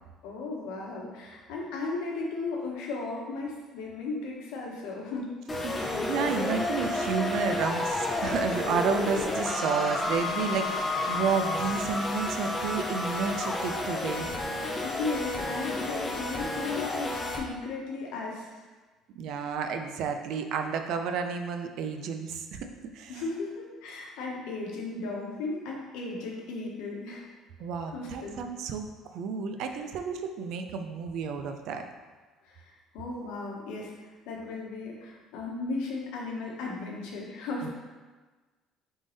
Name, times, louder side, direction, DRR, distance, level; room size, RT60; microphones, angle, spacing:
voice 1, 0.2-5.3 6.3-6.5 14.8-18.6 23.1-27.2 27.9-28.3 32.4-32.6 32.9-33.9 34.3-37.7, left 3 dB, 85° left, -2 dB, 0.9 m, -35 dB
sound 1, 5.5-17.4, left 2 dB, 15° left, 0.5 m, -31 dB
voice 2, 5.6-14.4 19.2-22.7 22.9-23.2 27.6-28.9 29.1-31.9 37.6-37.7, right 5 dB, 60° right, 6 dB, 0.4 m, -31 dB
3.6 x 3.3 x 3.9 m, 1.3 s
cardioid pair, 165°, 0 cm